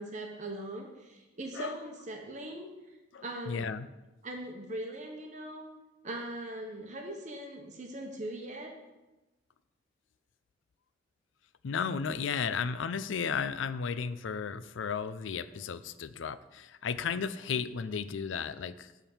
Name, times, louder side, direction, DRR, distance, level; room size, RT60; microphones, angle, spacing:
voice 1, 0.0-2.7 3.2-3.7 4.2-5.6 6.0-8.7, right 1 dB, 40° right, 2 dB, 1.0 m, -40 dB
voice 2, 3.1-3.9 11.6-18.9, left 6 dB, 85° left, 14 dB, 0.4 m, -34 dB
10.0 x 3.6 x 7.1 m, 1.1 s
head